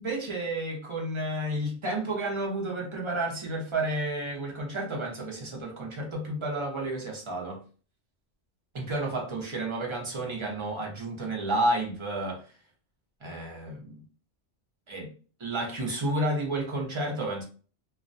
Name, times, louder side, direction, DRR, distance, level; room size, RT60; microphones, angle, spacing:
voice 1, 0.0-7.6 8.7-12.4 13.2-14.0 14.9-15.1 15.4-17.4, right 1 dB, 35° right, 0.5 m, -31 dB
2.3 x 2.1 x 2.5 m
omnidirectional pair, 1.3 m